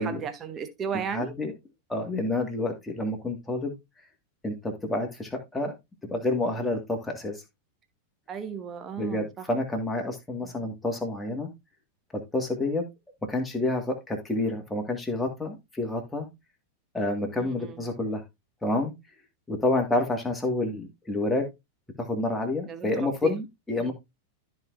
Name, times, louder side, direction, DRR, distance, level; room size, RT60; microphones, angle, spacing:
voice 1, 0.0-1.3 8.3-9.5 10.4-10.7 17.4-17.8 22.7-23.4 23.8-23.9, right 7 dB, 25° right, 1.3 m, -35 dB
voice 2, 1.1-1.5 1.9-3.7 4.4-5.7 6.0-7.4 9.0-11.5 12.1-12.9 13.3-16.3 16.9-18.2 18.6-18.9 19.5-21.5 22.0-23.9, left 2 dB, 10° left, 2.1 m, -28 dB
13.5 x 4.7 x 2.6 m
figure-of-eight pair, 90°, 0 cm